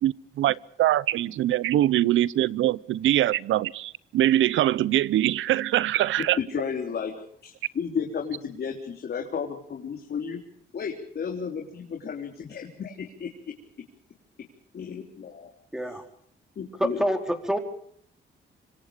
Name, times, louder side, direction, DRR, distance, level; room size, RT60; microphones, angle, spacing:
voice 1, 0.0-6.4, right 13 dB, 75° right, 0.8 m, -23 dB
voice 2, 6.4-10.4 10.7-13.3 14.7-15.5 16.6-17.0, left 6 dB, 55° left, 3.8 m, -33 dB
voice 3, 15.7-16.0 16.8-17.6, equal, 5° right, 4.4 m, -26 dB
26.0 x 26.0 x 5.1 m
cardioid pair, 90°, 20 cm